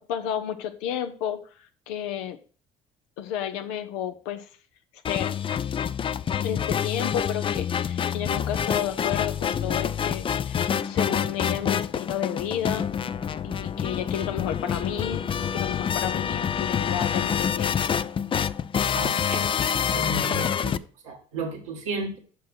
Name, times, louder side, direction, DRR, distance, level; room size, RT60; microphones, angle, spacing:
voice 1, 0.1-2.4 3.2-4.5 5.1-5.4 6.4-12.9 13.4-17.7, left 10 dB, 80° left, 7 dB, 0.6 m, -32 dB
sound 1, 5.0-20.8, left 8 dB, 30° left, 0.4 m, -27 dB
voice 2, 18.9-22.2, right 3 dB, 85° right, 0 dB, 1.7 m, -34 dB
5.8 x 4.7 x 6.0 m, 0.41 s
hypercardioid pair, 60°, 17 cm